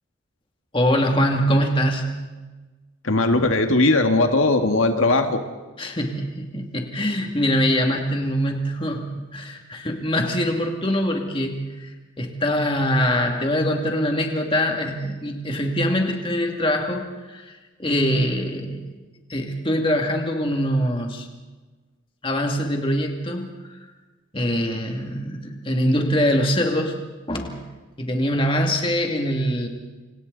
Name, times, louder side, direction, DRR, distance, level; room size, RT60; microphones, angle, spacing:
voice 1, 0.7-2.2 5.8-17.5 17.8-18.8 19.3-21.3 22.2-23.5 24.3-27.0 27.3-27.7 28.0-29.7, equal, 25° left, 2 dB, 2.5 m, -23 dB
voice 2, 3.0-5.4, left 2 dB, 85° left, 5 dB, 2.0 m, -19 dB
29.0 x 27.0 x 4.1 m, 1.3 s
head